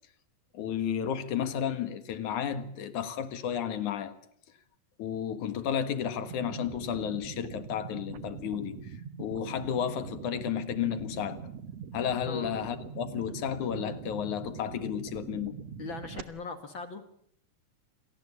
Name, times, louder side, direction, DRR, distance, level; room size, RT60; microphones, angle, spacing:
voice 1, 0.5-4.1 5.0-8.8 9.2-11.4 11.9-15.6, left 8 dB, 65° left, 2.9 m, -32 dB
sound 1, 6.2-16.2, right 7 dB, 60° right, 2.1 m, -43 dB
voice 2, 12.3-12.6 15.8-17.1, left 4 dB, 45° left, 2.0 m, -39 dB
27.0 x 18.0 x 8.6 m
omnidirectional pair, 3.8 m